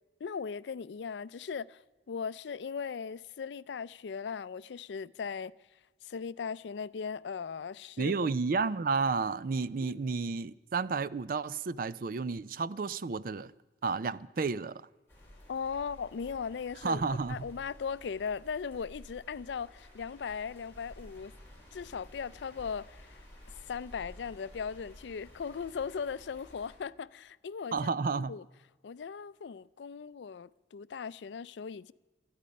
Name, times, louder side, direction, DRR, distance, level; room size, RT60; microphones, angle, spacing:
voice 1, 0.2-1.8 2.1-5.5 6.0-8.2 9.8-10.0 15.5-17.0 17.3-21.3 21.7-27.9 28.1-28.4 28.8-31.9, left 6 dB, 80° left, 0.4 m, -38 dB
voice 2, 8.0-13.5 13.8-14.8 16.8-17.5 27.7-28.3, right 4 dB, 50° right, 0.4 m, -31 dB
sound 1, 15.1-26.8, equal, 15° left, 4.5 m, -53 dB
18.5 x 13.0 x 5.3 m
head